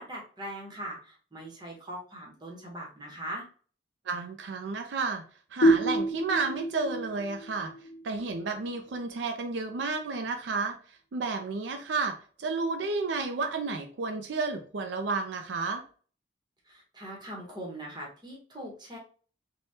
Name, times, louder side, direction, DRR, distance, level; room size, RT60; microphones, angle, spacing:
voice 1, 0.0-3.5 16.6-19.0, right 1 dB, 25° right, -1 dB, 0.9 m, -41 dB
voice 2, 4.1-5.2 5.5-7.7 8.0-10.7 11.1-15.8, right 4 dB, 80° right, 5 dB, 0.4 m, -31 dB
sound 1, 5.6-9.0, right 1 dB, 60° left, 0.7 m, -28 dB
3.3 x 2.2 x 2.7 m, 0.41 s
head